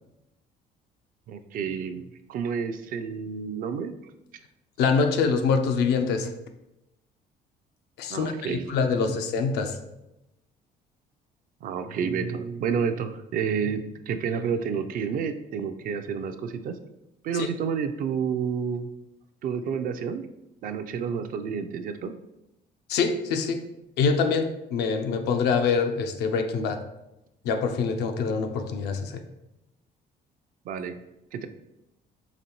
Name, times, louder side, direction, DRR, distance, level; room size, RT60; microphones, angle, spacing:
voice 1, 1.3-4.0 8.1-8.7 8.9-9.0 11.6-16.8 17.2-18.9 19.4-20.3 20.6-22.1 30.7-31.0 31.3-31.5, right 6 dB, 55° right, 0.4 m, -30 dB
voice 2, 4.8-6.3 8.0-9.8 17.3-17.5 22.9-23.6 24.0-26.8 27.4-29.2, left 5 dB, 80° left, 0.5 m, -25 dB
4.0 x 3.1 x 2.9 m
cardioid pair, 110°, 17 cm